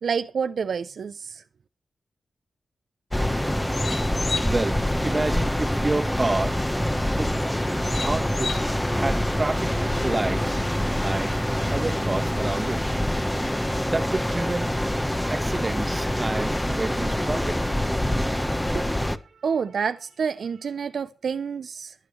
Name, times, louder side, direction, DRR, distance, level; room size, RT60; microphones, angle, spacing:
voice 1, 0.0-1.4 18.7-18.8 19.3-21.9, right 6 dB, 75° right, 0.5 m, -28 dB
sound 1, 3.1-19.2, left 1 dB, 10° left, 1.1 m, -25 dB
sound 2, 3.2-10.6, left 4 dB, 60° left, 4.8 m, -38 dB
voice 2, 4.4-6.6 7.1-7.4 8.0-8.6 8.9-9.8 10.0-10.6 11.0-11.4 11.7-12.9 13.8-14.7 15.3-17.8, right 2 dB, 35° right, 1.3 m, -29 dB
21.5 x 8.1 x 3.1 m
cardioid pair, 50°, 0 cm